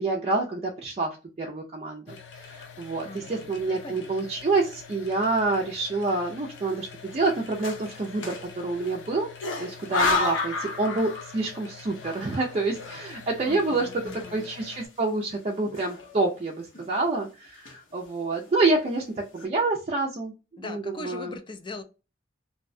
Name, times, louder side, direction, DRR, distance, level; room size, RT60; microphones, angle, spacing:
voice 1, 0.0-9.3 9.6-21.4, right 3 dB, 35° right, 0.4 m, -28 dB
sound 1, 2.1-14.9, left 6 dB, 70° left, 0.6 m, -46 dB
sound 2, 2.9-3.5 4.0-4.1 4.4-5.1 5.5-5.7 6.7-9.0 9.4-11.6 11.8-14.7 15.0-15.1 15.6-16.4 16.7-17.1 17.5-18.0 18.6-18.7 19.0-19.5, left 3 dB, 90° left, 0.9 m, -33 dB
voice 2, 3.0-4.3 13.4-14.5 20.6-21.8, left 2 dB, 25° left, 0.4 m, -41 dB
2.7 x 2.1 x 2.5 m
head